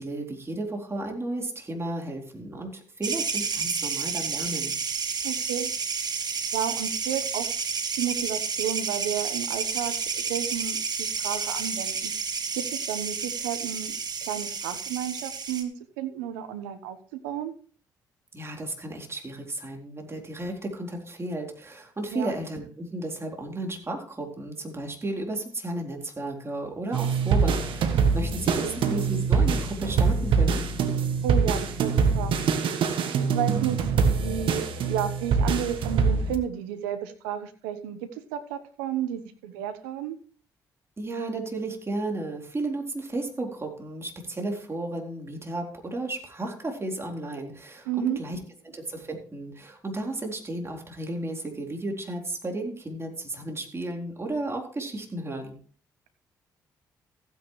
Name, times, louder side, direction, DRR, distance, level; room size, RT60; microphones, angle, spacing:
voice 1, 0.0-4.8 18.3-30.7 41.0-48.4 48.6-55.6, right 2 dB, 30° right, 1 dB, 4.0 m, -33 dB
sound 1, 3.0-15.6, right 5 dB, 50° right, 1.8 m, -30 dB
voice 2, 5.2-5.7 6.5-7.5 8.0-12.1 12.5-17.0 17.2-17.5 22.1-22.3 28.6-28.8 31.2-32.3 33.2-33.9 34.2-40.2 47.9-48.2, right 10 dB, 85° right, 9 dB, 1.1 m, -32 dB
sound 2, 26.9-36.4, right 5 dB, 65° right, 1.4 m, -24 dB
15.0 x 9.4 x 3.2 m, 0.42 s
hypercardioid pair, 45°, 9 cm